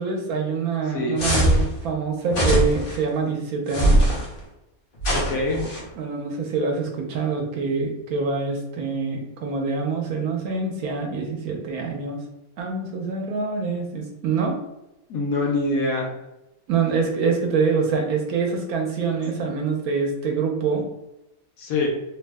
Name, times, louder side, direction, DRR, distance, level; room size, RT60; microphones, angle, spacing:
voice 1, 0.0-4.0 6.0-12.2 12.6-14.5 16.7-20.9, right 4 dB, 80° right, 1 dB, 1.2 m, -25 dB
sound 1, 1.2-1.7 2.3-3.0 3.7-4.3 5.0-5.8, right 1 dB, 45° left, 0.8 m, -20 dB
voice 2, 5.1-5.7 15.1-16.1 21.6-21.9, left 2 dB, 80° left, 0 dB, 1.1 m, -24 dB
3.0 x 2.0 x 3.4 m, 0.93 s
omnidirectional pair, 1.5 m